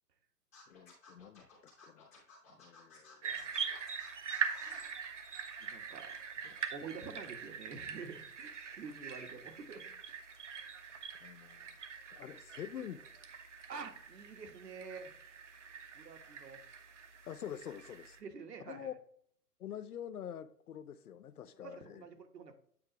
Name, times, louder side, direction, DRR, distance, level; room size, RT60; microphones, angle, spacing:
Scratching (performance technique), 0.5-4.9, left 4 dB, 10° left, 0.8 m, -57 dB
voice 1, 0.7-2.1 2.6-3.5 11.2-11.7 12.1-13.0 17.2-18.2 18.7-18.9 19.6-22.0, left 9 dB, 65° left, 0.6 m, -46 dB
sound 1, 3.2-18.2, right 6 dB, 50° right, 0.8 m, -43 dB
voice 2, 5.6-6.2 6.5-9.9 13.7-15.1 15.9-16.6 18.2-18.9 21.6-22.6, right 5 dB, 75° right, 1.3 m, -48 dB
8.7 x 4.6 x 2.9 m
hypercardioid pair, 175°, 49 cm